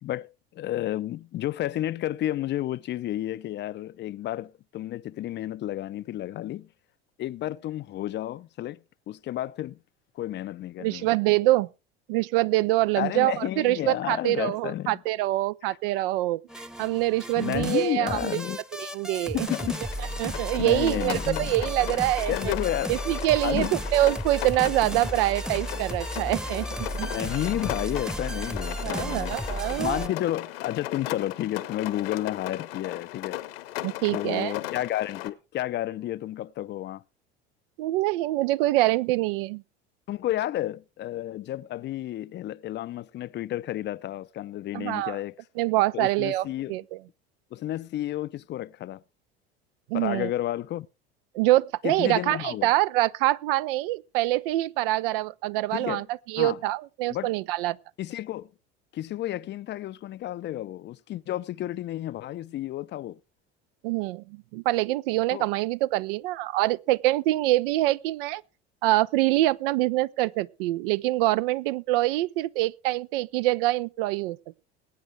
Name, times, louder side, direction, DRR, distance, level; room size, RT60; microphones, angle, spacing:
voice 1, 0.0-6.7 7.2-9.8 10.1-11.1 12.9-15.0 15.6-15.8 17.4-18.6 19.3-19.8 20.6-21.6 22.3-23.0 23.4-23.8 27.1-29.4 29.8-33.4 34.1-37.0 40.1-45.4 45.9-46.8 47.5-49.0 49.9-50.9 51.8-52.7 55.7-56.1 56.4-56.6 57.1-57.3 58.0-58.5 58.9-63.2 65.3-65.5, left 13 dB, 35° left, 0.5 m, -31 dB
voice 2, 10.8-11.7 12.1-18.3 18.7-19.5 20.2-22.5 22.9-27.1 28.8-30.1 33.8-34.5 37.8-39.6 44.7-45.2 45.6-46.8 49.9-50.3 51.3-57.8 63.8-68.4 68.8-74.4, right 17 dB, 65° right, 0.6 m, -25 dB
sound 1, 16.5-30.1, equal, ahead, 1.0 m, -34 dB
Rain, 19.5-35.3, left 16 dB, 70° left, 1.2 m, -37 dB
21.5 x 8.9 x 3.3 m
hypercardioid pair, 70°, 31 cm